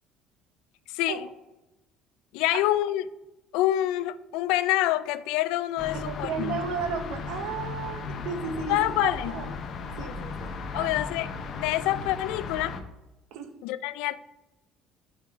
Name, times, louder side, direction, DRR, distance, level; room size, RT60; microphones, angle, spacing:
voice 1, 0.9-1.3 2.3-3.0 3.5-6.6 8.7-9.3 10.7-12.8 13.6-14.2, left 14 dB, 85° left, 0.3 m, -27 dB
sound 1, 5.8-12.8, left 4 dB, 35° left, 0.6 m, -36 dB
voice 2, 5.9-9.5 10.0-10.5 10.7-10.9 13.3-13.5, right 6 dB, 75° right, 0.9 m, -34 dB
5.7 x 4.5 x 4.7 m
cardioid pair, 175°, 0 cm